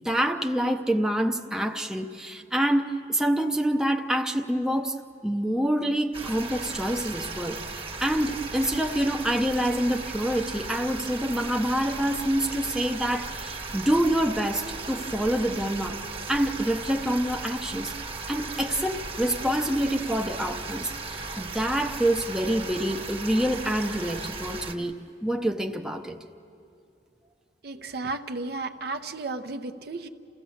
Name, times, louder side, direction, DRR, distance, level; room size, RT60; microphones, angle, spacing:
voice 1, 0.0-16.0 16.3-17.9 18.3-26.2, right 1 dB, 5° right, 4 dB, 0.6 m, -27 dB
sound 1, 6.1-24.8, right 3 dB, 30° right, 1.2 m, -36 dB
voice 2, 27.6-30.1, right 3 dB, 60° right, 8 dB, 0.8 m, -33 dB
29.5 x 15.5 x 7.1 m, 2.6 s
head